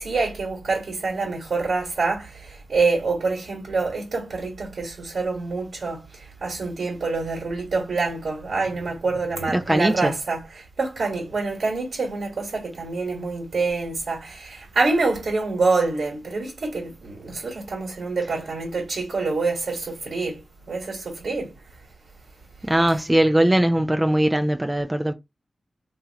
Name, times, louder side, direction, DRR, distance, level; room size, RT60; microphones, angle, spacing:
voice 1, 0.0-21.5, right 3 dB, 70° right, 1.6 m, -26 dB
voice 2, 9.5-10.1 22.7-25.1, right 1 dB, 15° right, 0.4 m, -20 dB
3.6 x 2.9 x 2.8 m
wide cardioid pair, 85°, 0 cm